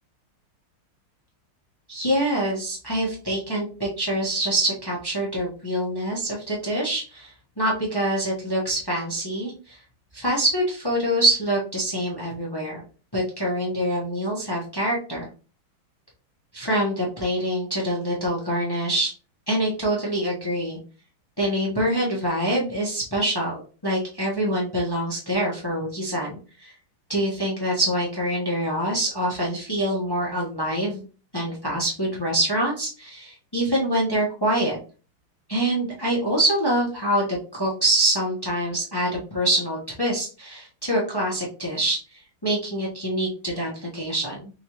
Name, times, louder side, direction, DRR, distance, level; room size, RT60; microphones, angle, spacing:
voice 1, 1.9-9.7 10.1-12.8 13.1-15.3 16.5-19.1 19.5-20.8 21.4-26.7 27.1-31.0 31.3-34.8 35.5-42.0 42.4-44.5, right 1 dB, 20° left, -4 dB, 0.7 m, -25 dB
3.8 x 3.5 x 3.0 m, 0.36 s
omnidirectional pair, 2.3 m